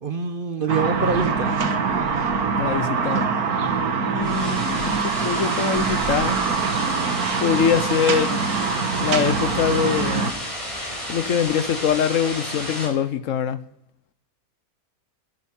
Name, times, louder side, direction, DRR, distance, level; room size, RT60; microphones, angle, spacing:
voice 1, 0.0-1.6, right 4 dB, 45° right, 0.9 m, -25 dB
sound 1, 0.7-10.3, right 5 dB, 75° right, 1.7 m, -24 dB
voice 2, 2.6-3.3 4.1-6.4 7.4-8.4 9.0-10.3 11.1-13.6, left 8 dB, 65° left, 1.1 m, -23 dB
sound 2, 4.2-12.9, equal, 20° left, 4.9 m, -32 dB
10.5 x 10.0 x 8.8 m
omnidirectional pair, 1.6 m